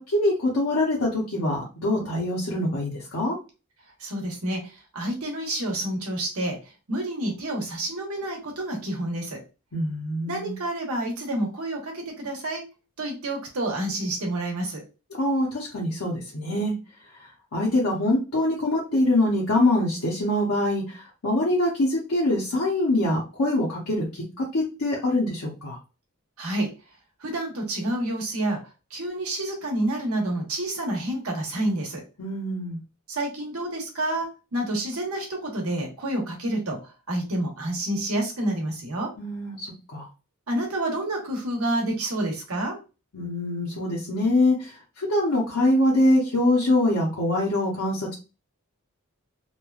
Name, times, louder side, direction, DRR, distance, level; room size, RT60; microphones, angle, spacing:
voice 1, 0.0-3.4 9.7-10.5 15.2-16.7 17.2-25.8 32.2-32.8 39.2-40.1 43.1-48.1, left 1 dB, 70° left, -5 dB, 0.7 m, -24 dB
voice 2, 4.0-6.6 6.9-9.4 10.3-12.6 13.0-14.8 26.4-26.7 27.2-28.6 28.9-32.0 33.1-39.1 40.5-42.8, right 1 dB, 75° right, 1 dB, 1.0 m, -29 dB
3.1 x 2.2 x 2.3 m, 0.31 s
head